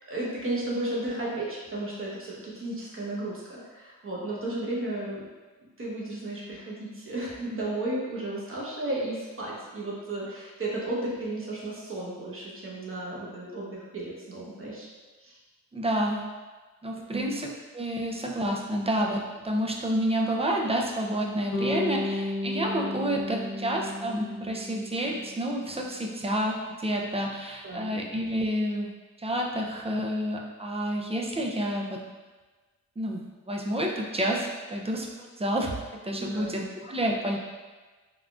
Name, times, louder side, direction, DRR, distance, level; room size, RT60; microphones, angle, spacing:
voice 1, 0.1-5.2 5.8-14.9 15.2-15.4 17.1-17.3 27.6-28.0 36.3-36.5, right 2 dB, 35° right, -5 dB, 1.0 m, -34 dB
voice 2, 15.7-16.2 16.8-28.9 29.2-32.0 33.0-35.8 36.0-37.4, equal, 20° right, 0 dB, 0.4 m, -29 dB
Bass guitar, 21.5-25.6, left 2 dB, 40° left, 0.6 m, -33 dB
3.5 x 2.4 x 2.3 m, 1.3 s
cardioid pair, 65°, 35 cm